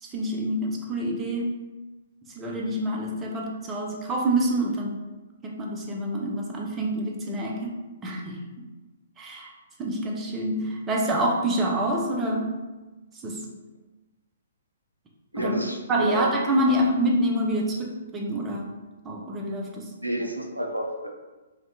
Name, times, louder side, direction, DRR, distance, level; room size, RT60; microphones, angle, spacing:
voice 1, 0.0-1.6 2.4-5.0 5.4-8.4 9.2-9.5 9.8-12.6 13.2-13.5 15.4-15.6 15.9-18.8 19.0-19.9, right 1 dB, 15° right, -1 dB, 0.4 m, -27 dB
voice 2, 15.3-16.3 20.0-21.1, right 1 dB, 90° right, 1 dB, 0.4 m, -29 dB
2.7 x 2.1 x 2.6 m, 1.2 s
figure-of-eight pair, 125°, 0 cm